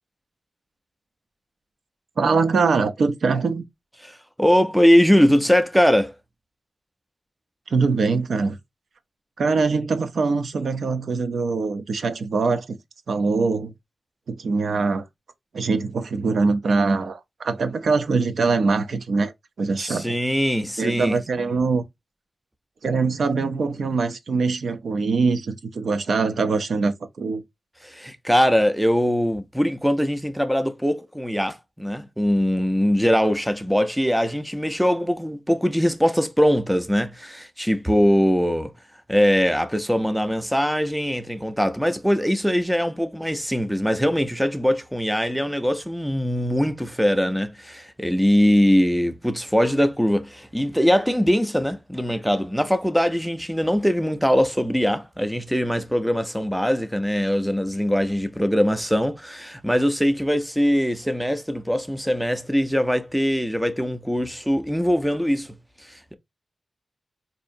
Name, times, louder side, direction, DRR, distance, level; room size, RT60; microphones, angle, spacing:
voice 1, 2.2-3.6 7.7-8.6 9.4-12.7 13.1-13.7 14.3-15.0 15.5-19.3 19.6-20.1 20.8-21.8 22.8-27.4, right 4 dB, 75° right, 0.5 m, -23 dB
voice 2, 4.0-6.1 19.8-21.2 27.8-38.7 39.1-65.6 65.9-66.1, equal, ahead, 0.4 m, -21 dB
4.3 x 2.7 x 2.5 m
wide cardioid pair, 150°, 0 cm